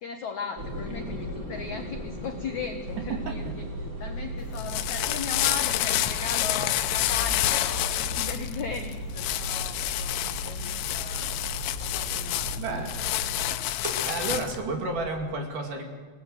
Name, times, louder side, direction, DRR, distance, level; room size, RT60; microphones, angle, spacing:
voice 1, 0.0-3.4 3.8-11.3 11.8-12.9 13.3-13.7, left 5 dB, 70° left, 5 dB, 1.8 m, -38 dB
sound 1, 0.6-15.3, equal, 20° right, 4.1 m, -41 dB
sound 2, 2.8-13.6, right 2 dB, 75° right, 3.4 m, -38 dB
voice 2, 3.1-3.5 12.6-12.9 14.0-15.8, right 3 dB, 50° right, 3 dB, 3.6 m, -31 dB
sound 3, 4.4-14.6, left 14 dB, 90° left, 3.5 m, -29 dB
28.5 x 19.0 x 8.0 m, 1.5 s
omnidirectional pair, 5.5 m